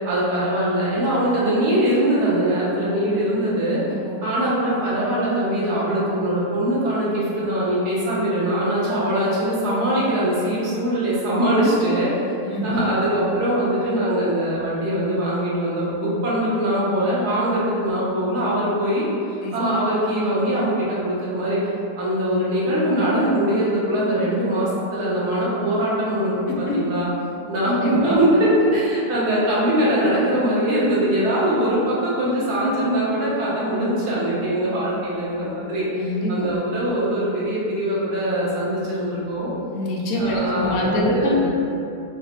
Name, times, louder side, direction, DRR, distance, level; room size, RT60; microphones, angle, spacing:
voice 1, 0.0-3.8 4.2-12.1 12.6-21.6 22.0-27.1 27.5-39.5 40.1-41.6, right 1 dB, 85° right, -8 dB, 1.5 m, -22 dB
voice 2, 3.9-4.2 12.5-12.8 19.4-19.5 26.7-26.8 27.8-28.2 36.0-36.5 39.7-41.4, left 1 dB, 75° left, -3 dB, 1.0 m, -25 dB
3.9 x 2.2 x 4.1 m, 2.6 s
omnidirectional pair, 1.6 m